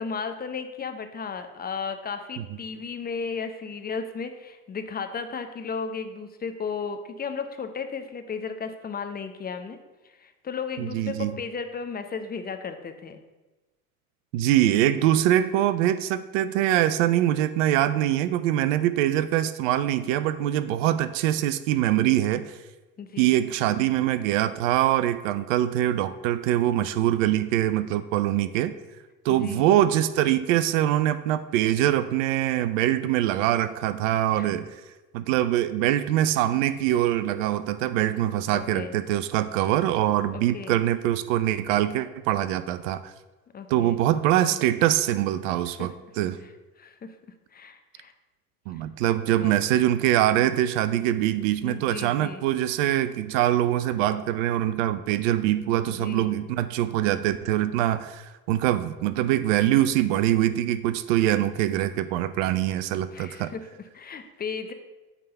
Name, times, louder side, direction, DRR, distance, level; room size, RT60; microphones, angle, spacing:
voice 1, 0.0-9.8 10.0-13.2 23.0-23.3 29.3-29.6 34.4-34.5 38.5-38.9 40.3-40.8 43.5-44.0 45.8-45.9 46.4-46.5 46.8-47.2 47.5-48.1 48.7-49.5 51.6-52.5 55.8-56.3 63.1-64.7, left 5 dB, 20° left, 8 dB, 0.7 m, -35 dB
voice 2, 10.8-11.4 14.3-22.5 23.2-28.7 29.2-34.7 35.1-43.1 43.7-46.4 48.7-63.5, right 12 dB, 60° right, 13 dB, 0.6 m, -23 dB
8.8 x 3.6 x 6.8 m, 1.1 s
hypercardioid pair, 85°, 44 cm